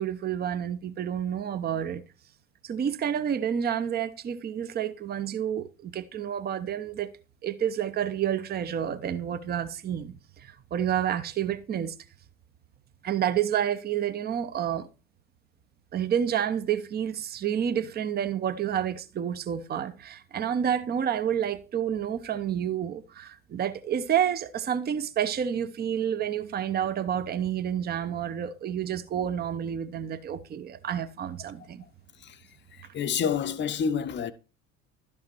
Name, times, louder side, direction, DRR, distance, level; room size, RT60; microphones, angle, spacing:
voice 1, 0.0-2.0 2.6-7.1 7.4-11.9 13.0-14.9 15.9-31.8, right 9 dB, 25° right, 0.8 m, -29 dB
voice 2, 32.7-34.3, left 7 dB, 25° left, 0.9 m, -29 dB
12.5 x 5.5 x 4.4 m
figure-of-eight pair, 70°, 40 cm